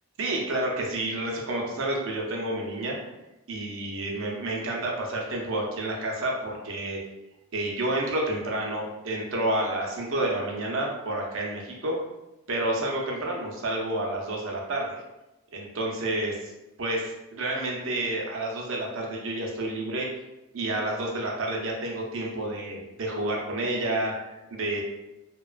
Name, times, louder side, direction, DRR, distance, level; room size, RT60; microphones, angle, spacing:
voice 1, 0.2-3.0 3.5-7.0 7.5-12.0 12.5-15.0 15.5-16.5 16.8-20.1 20.5-24.8, right 1 dB, 60° right, -1 dB, 0.6 m, -29 dB
2.8 x 2.2 x 2.4 m, 0.98 s
head